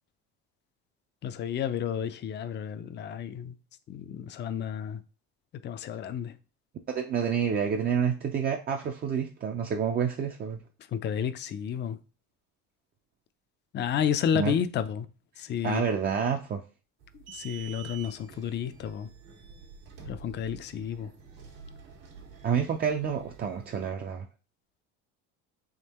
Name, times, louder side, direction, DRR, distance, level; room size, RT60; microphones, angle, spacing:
voice 1, 1.2-3.5 3.9-5.0 5.6-6.3 10.9-12.0 13.7-15.1 15.4-15.9 17.3-19.1 20.1-21.1, left 8 dB, 30° left, 0.4 m, -31 dB
voice 2, 6.9-10.6 14.3-14.6 15.6-16.6 22.4-24.3, right 7 dB, 30° right, 0.4 m, -28 dB
sound 1, 17.0-23.9, right 6 dB, 90° right, 1.4 m, -48 dB
3.7 x 2.8 x 4.1 m
supercardioid pair, 100°, 34 cm